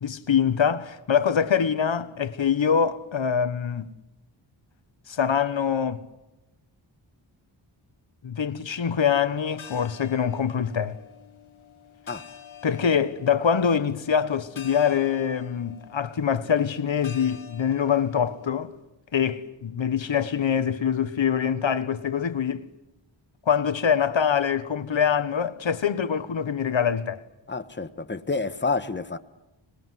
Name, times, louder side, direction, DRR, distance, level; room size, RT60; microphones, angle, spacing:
voice 1, 0.0-3.9 5.1-6.0 8.2-11.0 12.6-18.7 19.1-22.7 23.4-27.2, left 7 dB, 70° left, 1.5 m, -24 dB
sound 1, 9.4-18.5, left 8 dB, 90° left, 1.7 m, -47 dB
voice 2, 27.5-29.2, left 4 dB, 25° left, 1.4 m, -29 dB
25.5 x 21.5 x 9.5 m
wide cardioid pair, 80°, 47 cm